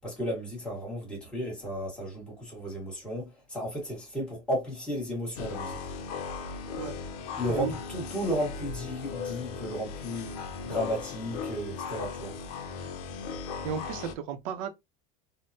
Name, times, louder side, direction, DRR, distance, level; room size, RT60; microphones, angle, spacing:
voice 1, 0.0-5.8 7.4-10.4 10.6-12.4, equal, 5° left, 1.1 m, -34 dB
sound 1, 5.4-14.1, left 5 dB, 90° left, 0.6 m, -37 dB
voice 2, 13.6-14.7, right 7 dB, 65° right, 0.6 m, -34 dB
3.5 x 2.1 x 2.6 m
cardioid pair, 175°, 19 cm